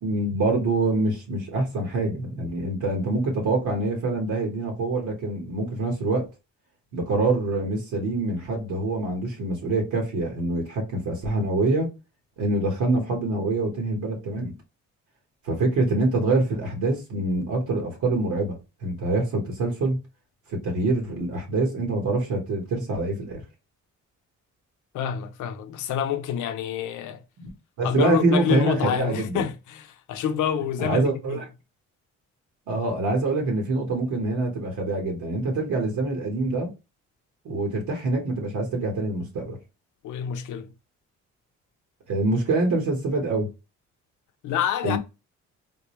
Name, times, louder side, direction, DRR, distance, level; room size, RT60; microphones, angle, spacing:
voice 1, 0.0-6.3 6.9-11.9 12.4-14.5 15.5-20.0 20.5-23.4 27.4-27.5 27.8-29.5 30.8-31.4 32.7-36.7 37.4-39.6 42.1-43.5 44.8-45.0, right 2 dB, 75° right, 1.4 m, -25 dB
voice 2, 24.9-27.2 27.8-31.4 40.0-40.7 44.4-45.0, left 9 dB, 80° left, 0.6 m, -27 dB
3.7 x 2.2 x 3.1 m
cardioid pair, 90°, 30 cm